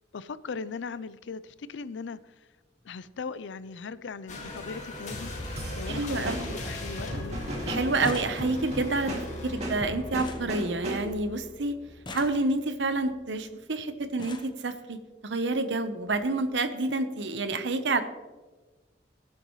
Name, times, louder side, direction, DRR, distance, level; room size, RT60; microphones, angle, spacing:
voice 1, 0.1-2.3 2.8-5.3 5.7-7.4, left 5 dB, 85° left, 0.5 m, -39 dB
sound 1, 2.8-3.0 4.2-4.3 4.6-4.7 4.9-5.1 5.6-6.1 6.3-6.4 6.6-7.0 7.3-11.3 11.9-12.8 13.6-13.7 14.0-14.6 15.5-15.6 16.0-16.2 16.4-16.6, left 2 dB, 25° left, 0.9 m, -45 dB
sound 2, 4.3-12.4 12.8-13.1, left 1 dB, 40° left, 1.9 m, -39 dB
sound 3, 5.6-11.3, right 1 dB, 40° right, 2.4 m, -36 dB
voice 2, 5.9-6.5 7.7-9.1 9.4-11.7 12.1-18.0, right 2 dB, 85° right, 0.9 m, -28 dB
19.0 x 7.7 x 3.1 m
head